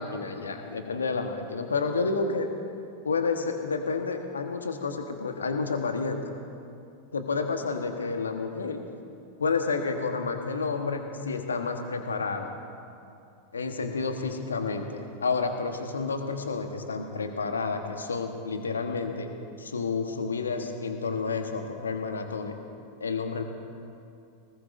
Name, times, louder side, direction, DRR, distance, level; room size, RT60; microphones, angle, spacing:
voice 1, 0.0-2.5 3.0-6.2 7.1-8.8 9.4-12.5 13.5-19.3 19.6-22.5 23.0-23.4, left 4 dB, 70° left, 6 dB, 1.2 m, -30 dB
19.5 x 19.5 x 2.6 m, 2.6 s
figure-of-eight pair, 90°, 0 cm